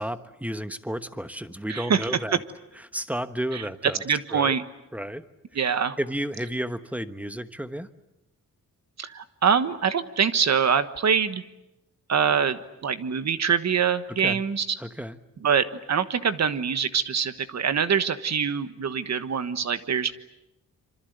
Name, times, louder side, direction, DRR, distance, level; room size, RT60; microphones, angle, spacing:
voice 1, 0.0-2.4 2.9-4.0 4.3-4.5 4.9-5.2 5.5-5.7 6.0-7.9 14.1-14.4 14.8-15.2, equal, 5° right, 10 dB, 1.1 m, -32 dB
voice 2, 1.7-2.1 3.5-3.6 4.0-4.6 5.5-6.0 9.0-11.4 12.1-14.7 15.4-20.1, right 7 dB, 50° right, 11 dB, 1.3 m, -24 dB
26.5 x 25.5 x 8.1 m, 0.94 s
wide cardioid pair, 130°, 33 cm